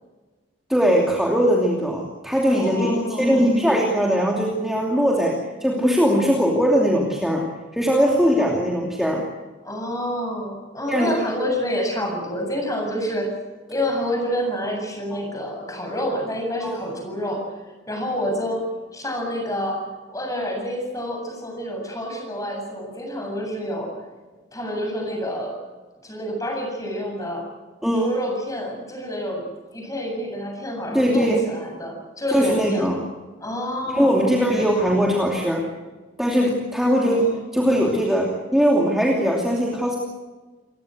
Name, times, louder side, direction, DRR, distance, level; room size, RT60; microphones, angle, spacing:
voice 1, 0.7-5.3 5.6-7.4 7.7-9.2 10.9-11.1 16.6-16.8 27.8-28.1 30.9-31.4 32.3-33.0 33.9-35.6 36.2-37.3 37.5-40.0, equal, ahead, -2 dB, 2.7 m, -20 dB
voice 2, 2.6-3.4 9.6-13.3 13.7-17.4 17.9-18.6 18.9-19.8 20.1-23.9 24.5-25.6 26.0-27.4 28.0-29.4 29.7-32.9 33.4-34.7 37.1-37.4, equal, 20° left, 1 dB, 8.0 m, -28 dB
29.0 x 16.5 x 7.9 m, 1.3 s
head